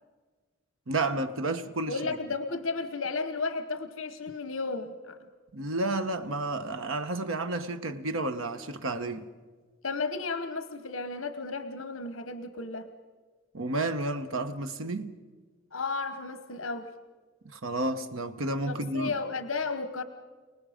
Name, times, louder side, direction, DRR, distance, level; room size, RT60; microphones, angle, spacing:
voice 1, 0.9-2.0 5.5-9.3 13.5-15.2 17.5-19.1, right 2 dB, 80° right, 1.1 m, -31 dB
voice 2, 1.9-5.3 9.8-12.9 15.7-16.9 18.7-20.0, left 4 dB, 75° left, 1.1 m, -33 dB
30.0 x 19.0 x 5.1 m
head